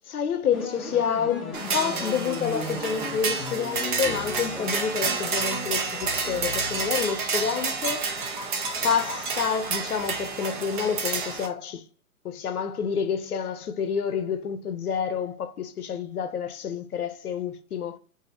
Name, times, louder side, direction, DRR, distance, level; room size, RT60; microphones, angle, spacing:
voice 1, 0.1-8.1 8.8-11.8 12.2-18.0, left 7 dB, 90° left, 0.6 m, -28 dB
sound 1, 0.5-7.2, left 2 dB, ahead, 0.7 m, -37 dB
sound 2, 1.5-11.5, right 4 dB, 35° right, 0.6 m, -30 dB
4.2 x 2.6 x 2.6 m
hypercardioid pair, 145°, 43 cm